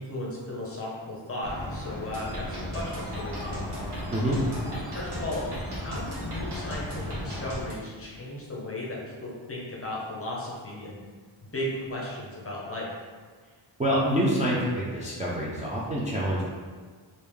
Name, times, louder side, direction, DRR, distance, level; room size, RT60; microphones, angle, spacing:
voice 1, 0.0-3.9 4.9-5.5 5.8-11.0 11.5-13.0, left 1 dB, 30° left, -4 dB, 0.7 m, -35 dB
sound 1, 1.4-7.6, left 1 dB, 5° left, 1.5 m, -36 dB
sound 2, 2.1-7.7, right 1 dB, 55° right, 0.9 m, -40 dB
voice 2, 4.1-4.4 13.8-16.5, equal, 15° right, -7 dB, 0.3 m, -26 dB
3.3 x 2.6 x 3.4 m, 1.5 s
wide cardioid pair, 180°, 48 cm